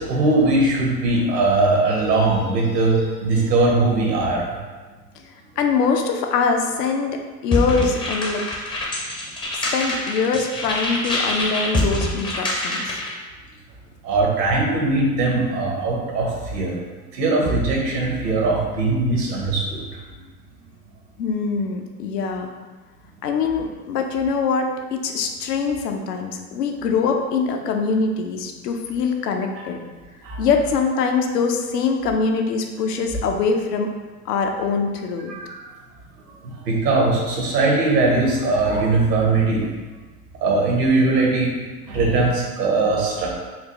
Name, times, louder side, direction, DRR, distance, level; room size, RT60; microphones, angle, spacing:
voice 1, 0.0-4.4 14.0-16.7 17.1-19.8 29.5-29.6 30.2-30.4 35.3-35.5 36.4-39.7 40.4-41.5 41.9-43.4, right 2 dB, 85° right, -2 dB, 1.2 m, -20 dB
voice 2, 5.6-8.4 9.5-13.0 21.2-22.5 23.2-29.8 30.4-33.9 34.3-35.3, left 5 dB, 80° left, 4 dB, 0.6 m, -23 dB
sound 1, 7.5-13.1, left 1 dB, 10° left, 0.4 m, -25 dB
4.3 x 2.2 x 3.0 m, 1.3 s
hypercardioid pair, 100°, 47 cm